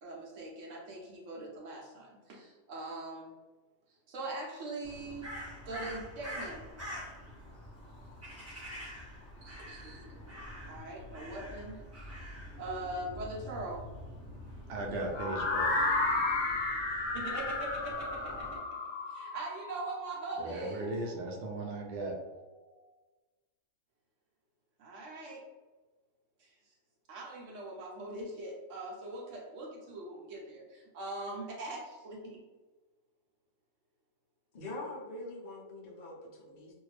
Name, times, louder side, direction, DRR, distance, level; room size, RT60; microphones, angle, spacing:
voice 1, 0.0-3.3 4.1-5.3 5.7-6.6 9.8-10.0 10.7-11.8 12.6-13.8 17.1-18.6 19.1-20.9 24.8-25.4 26.4-26.5 27.1-32.4, right 2 dB, 55° right, -3 dB, 1.0 m, -41 dB
Crow, 4.8-18.6, equal, 20° right, 0.4 m, -46 dB
voice 2, 14.7-15.7 20.4-22.1, right 2 dB, 85° right, 0 dB, 0.5 m, -37 dB
sound 1, 15.1-21.1, left 3 dB, 75° left, 1.2 m, -33 dB
voice 3, 34.5-36.7, left 2 dB, 55° left, -4 dB, 0.4 m, -43 dB
2.7 x 2.6 x 3.2 m, 1.3 s
omnidirectional pair, 1.8 m